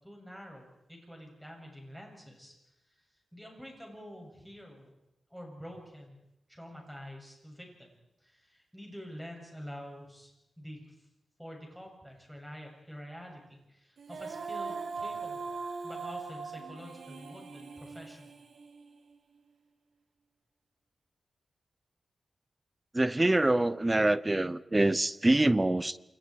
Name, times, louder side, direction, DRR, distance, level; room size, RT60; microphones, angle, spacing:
voice 1, 0.0-2.5 3.3-4.9 5.3-6.2 6.5-7.9 8.2-10.3 10.6-10.9 11.4-15.5 15.8-18.3, equal, ahead, 7.8 m, -47 dB
Female singing, 14.0-19.2, right 4 dB, 85° right, 2.8 m, -40 dB
voice 2, 22.9-26.0, right 2 dB, 20° right, 0.8 m, -25 dB
28.5 x 28.0 x 4.8 m
wide cardioid pair, 105°, 0 cm